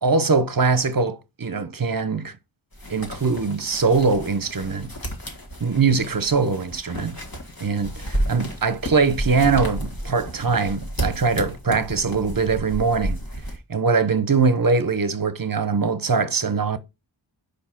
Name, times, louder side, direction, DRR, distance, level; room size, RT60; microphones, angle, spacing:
voice 1, 0.0-2.4 2.9-4.9 5.6-7.2 7.6-13.2 13.7-16.8, right 4 dB, 45° right, 0.8 m, -22 dB
sound 1, 2.7-13.6, equal, 45° left, 1.9 m, -32 dB
5.0 x 4.6 x 5.7 m
wide cardioid pair, 45°, 49 cm